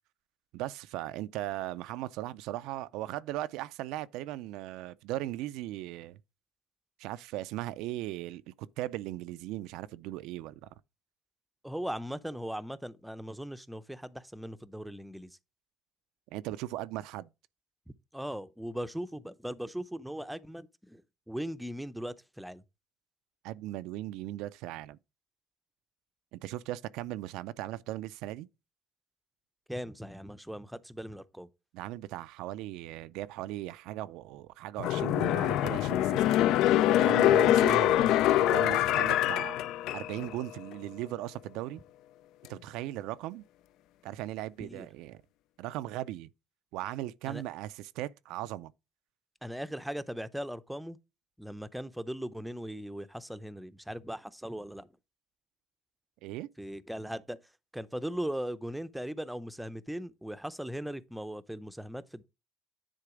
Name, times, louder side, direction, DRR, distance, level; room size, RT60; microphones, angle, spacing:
voice 1, 0.5-6.2 7.0-10.7 16.3-17.3 23.4-25.0 26.3-28.5 31.7-36.2 36.9-38.1 38.4-39.6 39.9-41.8 42.5-43.4 44.0-45.2 45.6-46.3 46.7-48.7 56.2-56.5, right 15 dB, 90° right, 0.4 m, -38 dB
voice 2, 11.6-15.3 17.9-21.0 21.3-22.6 29.7-31.5 44.6-44.9 47.2-47.4 49.4-51.0 51.4-54.9 56.6-57.4 57.7-62.2, equal, 5° right, 0.5 m, -39 dB
sound 1, 34.8-40.4 40.7-40.8, left 13 dB, 80° left, 0.3 m, -24 dB
9.9 x 3.8 x 4.9 m
cardioid pair, 115°, 0 cm